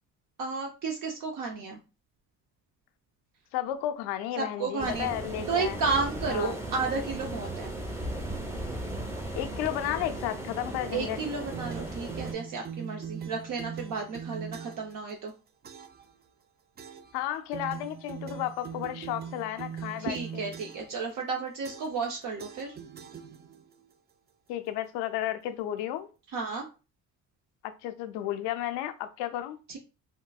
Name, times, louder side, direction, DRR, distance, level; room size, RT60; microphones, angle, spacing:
voice 1, 0.4-1.8 4.4-5.1 5.5-7.7 10.9-15.3 20.0-22.7 26.3-26.7 29.7-29.8, right 4 dB, 55° right, 0.7 m, -32 dB
voice 2, 3.5-5.8 6.3-6.5 9.4-11.2 17.1-20.4 24.5-26.1 27.6-29.6, left 12 dB, 85° left, 0.5 m, -33 dB
sound 1, 4.8-12.3, right 1 dB, 5° right, 0.9 m, -36 dB
sound 2, 11.5-15.0 15.6-16.1 16.8-17.2 17.5-21.0 21.6-22.1 22.4-23.7, right 7 dB, 25° right, 0.4 m, -41 dB
3.6 x 2.6 x 2.3 m
supercardioid pair, 70°, 38 cm